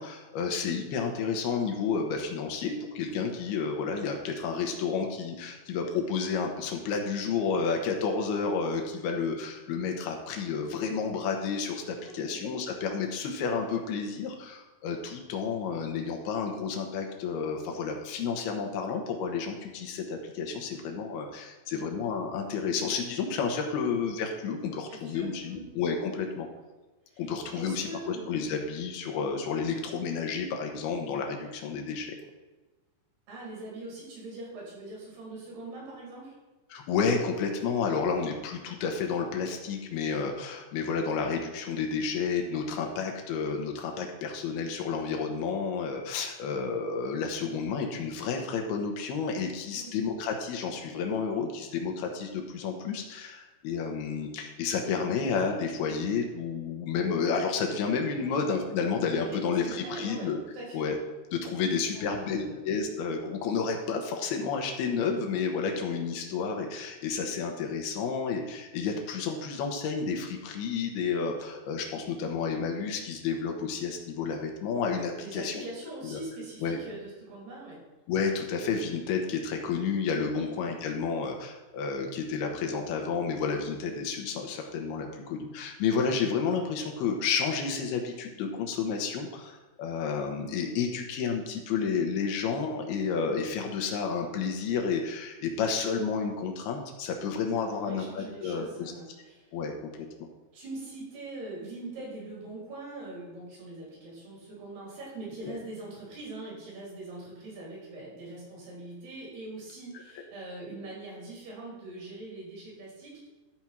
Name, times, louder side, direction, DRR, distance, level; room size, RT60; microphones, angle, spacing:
voice 1, 0.0-26.5 27.2-32.1 36.7-60.4 60.7-61.0 61.3-75.6 76.0-76.2 76.6-76.8 78.1-98.9 99.5-99.7 100.0-100.1 105.4-105.5 110.2-110.3, left 5 dB, 75° left, 2 dB, 2.9 m, -31 dB
voice 2, 12.1-12.4 21.7-21.9 24.9-25.6 27.1-28.2 33.3-36.3 49.7-49.9 58.2-58.4 59.1-60.8 61.7-62.6 75.1-77.8 80.3-80.5 97.6-99.5 100.5-113.3, right 2 dB, 70° right, -4 dB, 5.5 m, -42 dB
12.0 x 4.4 x 6.0 m, 1.2 s
omnidirectional pair, 4.7 m